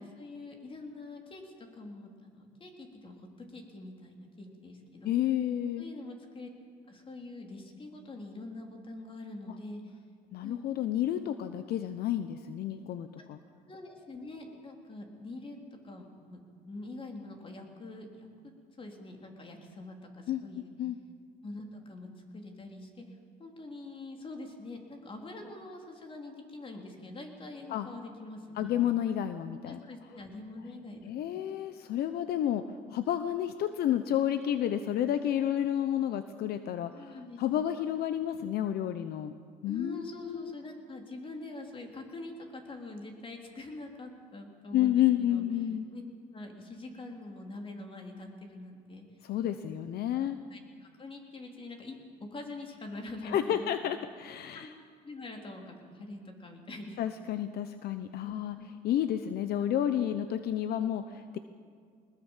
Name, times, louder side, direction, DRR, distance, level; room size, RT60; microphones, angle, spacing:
voice 1, 0.0-5.1 5.8-6.5 6.9-10.0 10.4-10.6 13.2-13.3 13.7-18.3 18.8-20.7 21.4-28.7 29.7-31.5 35.1-35.3 36.8-37.6 39.6-45.4 45.9-46.0 46.3-49.0 49.6-49.8 50.1-53.7 54.5-54.7 55.0-57.0 58.2-58.6, left 2 dB, 30° left, 2 dB, 3.7 m, -45 dB
voice 2, 5.0-5.8 10.3-13.4 20.3-21.0 27.7-27.9 28.6-29.8 31.1-32.6 32.9-39.3 39.6-40.5 44.7-45.9 49.2-50.4 53.2-54.7 57.0-58.6 58.8-61.4, left 11 dB, 70° left, 10 dB, 0.9 m, -30 dB
21.5 x 20.0 x 7.4 m, 2.1 s
cardioid pair, 110°, 17 cm